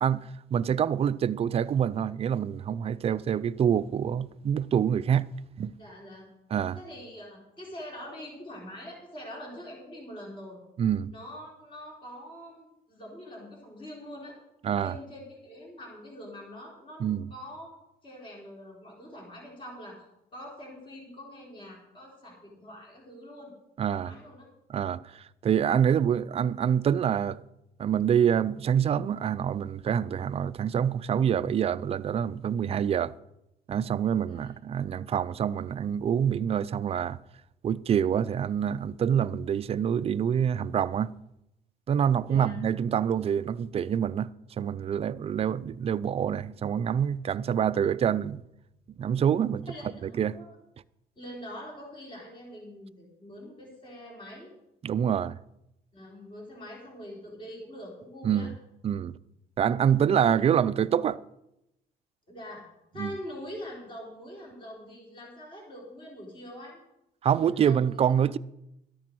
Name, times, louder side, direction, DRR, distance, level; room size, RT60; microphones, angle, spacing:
voice 1, 0.0-5.3 5.6-5.7 6.5-6.8 10.8-11.1 14.6-14.9 17.0-17.3 23.8-24.1 24.7-27.4 27.8-33.1 33.7-37.2 37.6-41.1 41.9-48.4 49.0-49.7 50.2-50.4 54.8-55.4 58.2-58.5 58.8-59.1 59.6-61.2 63.0-63.1 67.2-68.4, right 8 dB, 35° right, 0.4 m, -26 dB
voice 2, 5.8-6.3 6.7-10.6 11.1-14.4 14.8-17.7 18.0-20.0 20.3-23.5 23.9-24.5 34.2-34.5 42.2-42.6 49.6-50.6 51.2-54.5 55.9-58.5 60.2-60.3 62.3-62.7 62.9-66.8 67.3-67.8, equal, 30° left, 4.2 m, -44 dB
13.0 x 11.0 x 4.6 m
cardioid pair, 110°, 17 cm